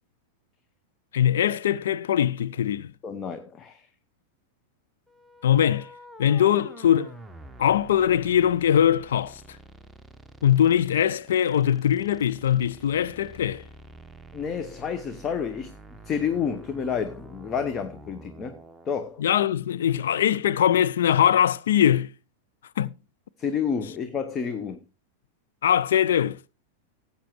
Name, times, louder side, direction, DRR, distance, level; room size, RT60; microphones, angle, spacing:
voice 1, 1.1-2.9 5.4-5.9 6.2-7.1 7.6-9.4 10.4-13.6 19.2-22.1 22.8-22.9 25.6-26.4, left 10 dB, 60° left, 0.5 m, -22 dB
voice 2, 3.0-3.9 14.3-19.3 23.4-24.9, left 7 dB, 25° left, 0.9 m, -30 dB
sound 1, 5.1-18.9, right 1 dB, 5° right, 1.1 m, -47 dB
17.5 x 8.1 x 3.1 m
figure-of-eight pair, 90°, 0 cm